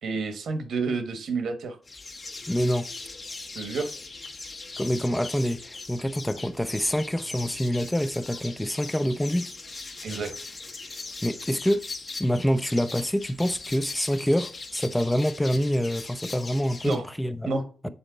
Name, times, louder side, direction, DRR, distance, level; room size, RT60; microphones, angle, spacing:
voice 1, 0.0-1.8 3.5-3.9 10.0-10.3 16.8-17.0 17.5-17.9, right 4 dB, 75° right, 1.2 m, -30 dB
sound 1, 1.9-17.0, left 3 dB, 45° left, 1.3 m, -40 dB
voice 2, 2.5-2.9 4.8-9.5 11.2-11.8 12.2-17.5 17.8-17.9, equal, 5° left, 0.5 m, -26 dB
7.1 x 4.2 x 3.9 m
cardioid pair, 70°, 0 cm